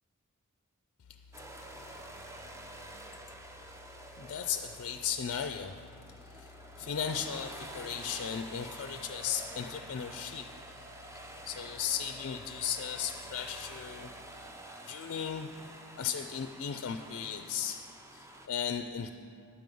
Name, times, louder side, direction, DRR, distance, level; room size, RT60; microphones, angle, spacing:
sound 1, 1.3-18.5, right 1 dB, 15° right, 0.5 m, -48 dB
voice 1, 4.2-5.9 6.3-10.5 11.4-14.1 14.9-15.5 15.9-17.8 18.1-19.1, left 8 dB, 60° left, 6 dB, 0.4 m, -36 dB
10.0 x 5.3 x 7.6 m, 2.4 s
head